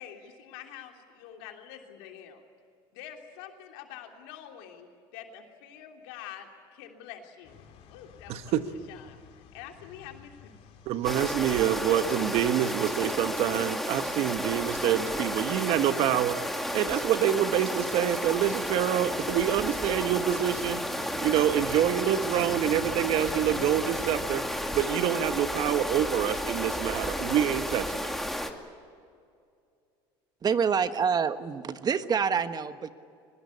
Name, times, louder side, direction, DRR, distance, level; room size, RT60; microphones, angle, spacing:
voice 1, 0.0-2.4 2.9-7.6 7.9-9.2 9.5-10.5, left 10 dB, 85° left, 3 dB, 3.2 m, -46 dB
sound 1, 7.4-24.8, left 6 dB, 60° left, 3.2 m, -49 dB
voice 2, 8.3-8.6 10.9-24.4 24.7-28.2, right 11 dB, 65° right, 11 dB, 1.3 m, -27 dB
sound 2, 11.0-28.5, equal, ahead, 2.4 m, -32 dB
voice 3, 30.4-32.9, right 6 dB, 35° right, 11 dB, 1.3 m, -27 dB
23.0 x 20.5 x 8.5 m, 2.3 s
supercardioid pair, 90°, 11 cm